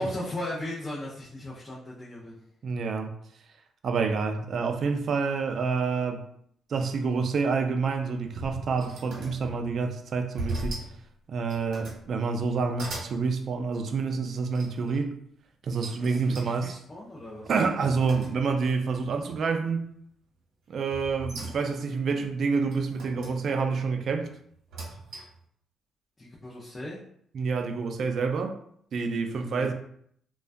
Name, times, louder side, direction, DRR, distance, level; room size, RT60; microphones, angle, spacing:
voice 1, 0.0-2.4 16.0-17.5 26.2-27.0 29.3-29.7, left 1 dB, 25° left, 0.5 m, -37 dB
voice 2, 2.6-3.1 3.8-6.2 6.7-10.8 11.3-15.1 15.6-16.8 17.5-19.9 20.7-24.3 27.3-28.6 28.9-29.7, right 4 dB, 60° right, 0.3 m, -28 dB
sound 1, 8.0-9.8 10.4-11.0 11.4-12.0 12.5-13.2 14.5-15.0 15.8-18.7 19.1-19.6 20.9-21.9 22.7-23.4 24.5-25.4, right 2 dB, 80° right, 0.9 m, -39 dB
2.2 x 2.2 x 2.5 m
cardioid pair, 90°, 0 cm